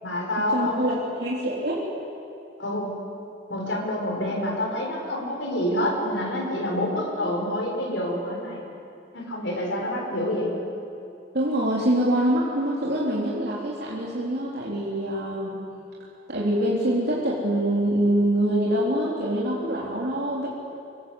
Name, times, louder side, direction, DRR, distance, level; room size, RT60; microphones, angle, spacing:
voice 1, 0.0-1.0 2.6-3.0 3.5-8.6 9.1-10.5, left 1 dB, 75° left, -1 dB, 6.2 m, -27 dB
voice 2, 0.5-1.9 11.3-15.7 16.3-20.5, right 1 dB, 60° right, -5 dB, 3.6 m, -25 dB
25.0 x 24.5 x 7.9 m, 2.6 s
head